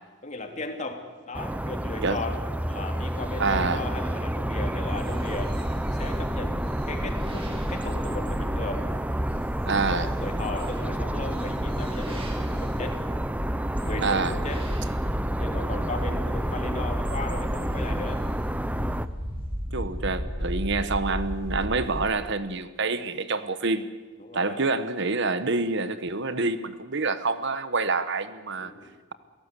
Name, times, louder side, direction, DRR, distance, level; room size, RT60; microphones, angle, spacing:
voice 1, 0.2-2.4 2.7-5.6 6.0-8.9 9.9-13.0 13.8-14.7 15.4-18.3 24.2-24.6 28.6-29.0, left 2 dB, 35° left, 4 dB, 3.0 m, -36 dB
sound 1, 1.3-19.1, right 1 dB, 5° right, 0.8 m, -30 dB
voice 2, 3.4-3.8 9.6-10.1 14.0-14.4 19.7-23.9 24.3-28.7, right 3 dB, 60° right, 12 dB, 1.2 m, -27 dB
sound 2, 4.9-22.0, equal, 30° right, 5.5 m, -34 dB
28.5 x 17.5 x 8.4 m, 1.3 s
head